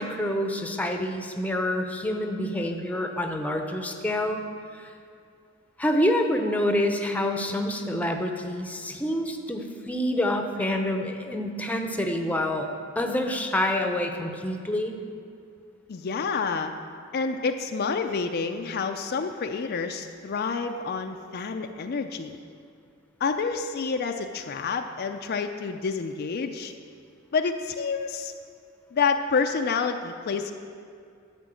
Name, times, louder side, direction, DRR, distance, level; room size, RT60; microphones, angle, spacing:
voice 1, 0.0-4.4 4.8-4.9 5.8-12.7 13.0-14.9, left 1 dB, 5° left, 4 dB, 0.7 m, -27 dB
voice 2, 15.9-16.7 17.1-22.4 23.2-26.7 27.3-28.3 28.9-30.5, left 5 dB, 50° left, 6 dB, 0.5 m, -28 dB
11.5 x 5.2 x 7.6 m, 2.4 s
head